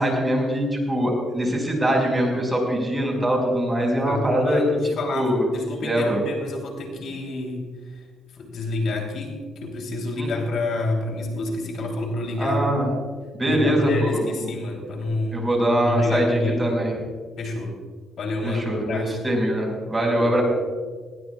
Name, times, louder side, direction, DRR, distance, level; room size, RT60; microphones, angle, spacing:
voice 1, 0.0-5.5 5.8-6.2 10.2-10.3 12.4-12.9 13.3-14.5 15.3-16.9 18.4-20.4, equal, 15° right, 0 dB, 5.3 m, -23 dB
voice 2, 3.9-8.0 8.3-12.7 13.4-15.5 15.8-16.8 17.4-17.8 18.2-19.2 20.2-20.4, left 2 dB, 65° left, 2 dB, 3.4 m, -29 dB
20.0 x 18.0 x 2.4 m, 1.5 s
cardioid pair, 90°, 0 cm